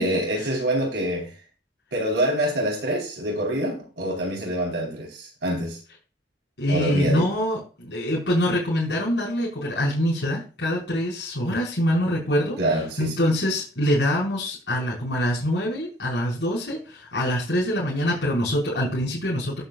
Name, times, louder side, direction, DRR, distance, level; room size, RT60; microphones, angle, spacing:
voice 1, 0.0-1.3 1.9-5.8 6.7-7.2 12.6-13.1, right 1 dB, 85° right, 4.3 m, -26 dB
voice 2, 6.6-12.6 13.0-19.6, equal, 80° left, 5.3 m, -24 dB
13.5 x 8.1 x 2.5 m
head